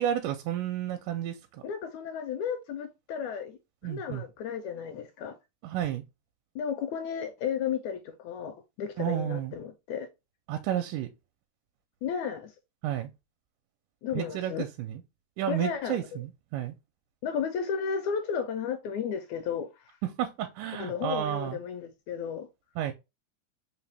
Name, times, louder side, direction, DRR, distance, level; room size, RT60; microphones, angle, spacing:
voice 1, 0.0-1.6 3.8-4.2 5.6-6.0 9.0-9.5 10.5-11.1 12.8-13.1 14.1-15.0 15.4-16.7 20.0-21.6 22.8-22.9, right 11 dB, 85° right, 2.0 m, -31 dB
voice 2, 1.6-3.6 3.8-5.4 6.5-10.1 12.0-12.5 14.0-14.7 15.5-16.2 17.2-20.0 20.7-22.5, left 7 dB, 80° left, 1.8 m, -33 dB
4.8 x 2.9 x 3.2 m
omnidirectional pair, 3.7 m